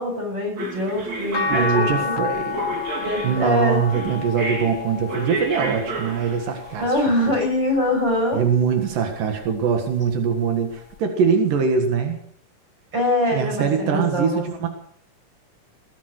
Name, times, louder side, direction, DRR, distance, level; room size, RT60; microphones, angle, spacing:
voice 1, 0.0-2.2 3.0-3.8 6.8-8.4 12.9-14.5, left 1 dB, 35° right, 2 dB, 7.1 m, -23 dB
sound 1, 0.6-7.3, right 2 dB, 55° right, 4.6 m, -32 dB
sound 2, 1.3-7.6 8.2-9.6 11.0-11.1, left 5 dB, 85° left, 0.7 m, -31 dB
voice 2, 1.5-2.8 3.2-6.9 7.3-7.4 8.3-12.2 13.3-14.7, right 6 dB, 85° right, 4 dB, 3.3 m, -22 dB
19.5 x 10.5 x 6.5 m, 0.65 s
omnidirectional pair, 3.7 m